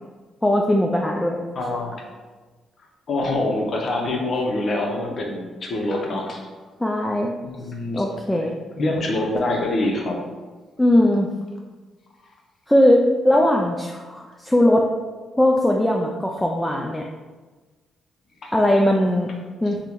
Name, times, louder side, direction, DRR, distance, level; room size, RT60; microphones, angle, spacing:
voice 1, 0.4-1.4 6.8-7.3 7.9-8.5 10.8-11.3 12.7-14.9 15.4-17.1 18.5-19.3 19.6-19.8, left 1 dB, 10° left, 0 dB, 0.3 m, -19 dB
voice 2, 1.5-2.0 3.1-6.4 7.4-8.0 8.8-10.2 18.4-18.5, left 2 dB, 55° left, 0 dB, 0.6 m, -25 dB
3.5 x 2.1 x 2.9 m, 1.3 s
supercardioid pair, 65°, 0 cm